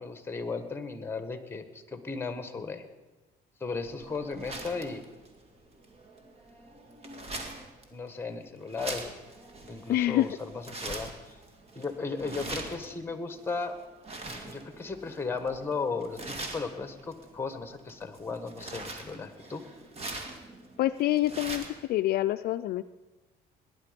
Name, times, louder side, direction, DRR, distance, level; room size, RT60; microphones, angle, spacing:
voice 1, 0.0-2.8 3.6-5.0 7.9-9.1 9.7-11.1 11.7-13.8 14.3-19.7, left 4 dB, 15° left, 9 dB, 1.5 m, -35 dB
sound 1, 3.8-21.9, right 2 dB, 35° right, 2.2 m, -43 dB
voice 2, 9.9-10.3 20.8-21.6 21.9-22.8, left 15 dB, 65° left, 11 dB, 0.4 m, -26 dB
18.5 x 10.5 x 5.2 m, 1.2 s
cardioid pair, 110°, 17 cm